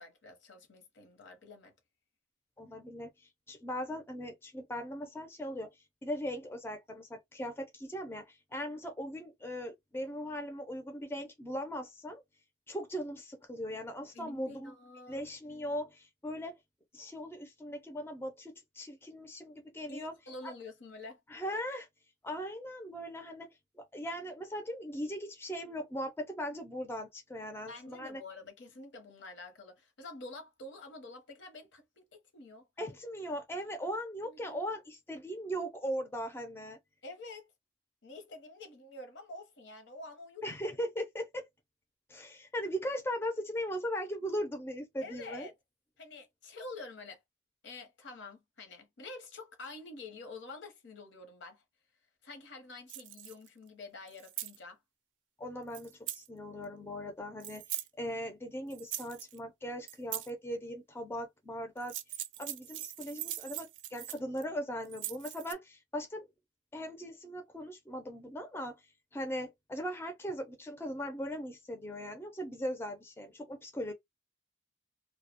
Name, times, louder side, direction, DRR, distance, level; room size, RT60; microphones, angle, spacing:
voice 1, 0.0-1.7 14.1-15.2 19.9-21.2 27.7-32.9 34.2-34.6 37.0-37.5 38.0-40.4 45.0-45.5 46.0-47.2 47.6-51.6 52.2-54.8, left 2 dB, 70° left, 0.7 m, -48 dB
voice 2, 2.6-3.1 3.5-5.7 6.0-12.2 12.7-14.7 15.1-16.5 16.9-20.1 21.3-21.9 22.2-23.5 23.8-28.2 32.8-36.8 40.4-41.5 42.1-45.5 55.4-62.0 62.4-66.3 66.7-68.8 69.1-73.9, equal, 10° left, 0.4 m, -39 dB
sound 1, 52.9-53.5 54.1-54.6 55.7-56.3 57.4-57.9 58.7-59.4 59.9-60.3 61.8-64.4 64.8-65.5, right 13 dB, 75° right, 0.3 m, -41 dB
2.3 x 2.0 x 2.8 m
head